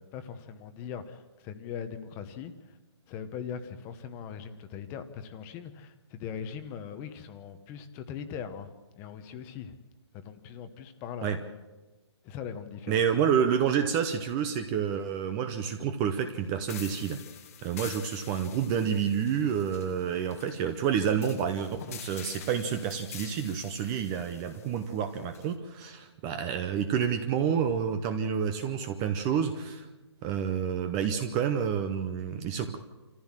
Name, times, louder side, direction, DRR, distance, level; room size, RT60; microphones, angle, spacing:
voice 1, 0.0-2.8 3.1-9.8 10.1-11.4 12.2-13.0, left 7 dB, 15° left, 10 dB, 0.9 m, -40 dB
voice 2, 12.9-17.2 17.6-29.9 30.2-32.8, right 8 dB, 15° right, 8 dB, 0.7 m, -29 dB
sound 1, 16.7-25.5, left 9 dB, 30° left, 1.2 m, -47 dB
26.0 x 14.5 x 7.4 m, 1.2 s
hypercardioid pair, 165°, 15 cm